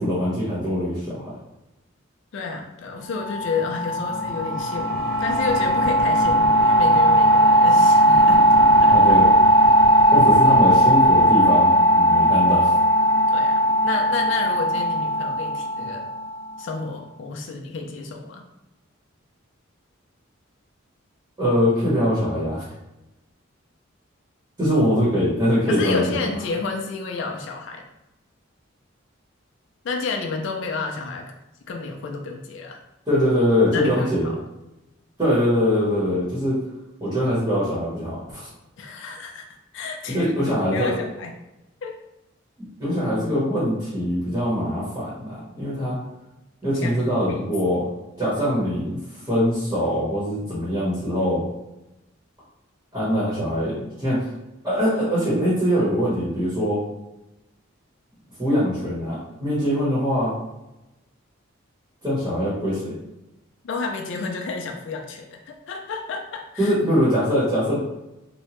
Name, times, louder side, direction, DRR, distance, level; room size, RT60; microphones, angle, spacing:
voice 1, 0.0-1.4 8.9-9.3 10.1-12.7 21.4-22.6 24.6-26.1 33.1-34.3 35.2-36.6 37.0-38.5 40.1-40.9 42.6-46.0 46.6-47.9 48.2-49.0 49.3-51.4 52.9-54.2 54.6-56.9 58.4-60.3 62.0-63.0 66.6-67.8, equal, 15° right, -9 dB, 0.9 m, -22 dB
voice 2, 2.3-8.5 8.8-9.0 13.3-16.1 16.6-18.4 25.7-27.8 29.8-31.3 31.7-32.8 33.7-34.3 38.8-39.5 39.7-41.3 41.8-41.9 46.6-47.4 50.7-50.8 63.6-66.7, left 4 dB, 60° left, 2 dB, 0.4 m, -31 dB
sound 1, 3.1-16.6, equal, 45° right, 0.5 m, -17 dB
2.8 x 2.1 x 2.9 m, 0.93 s
head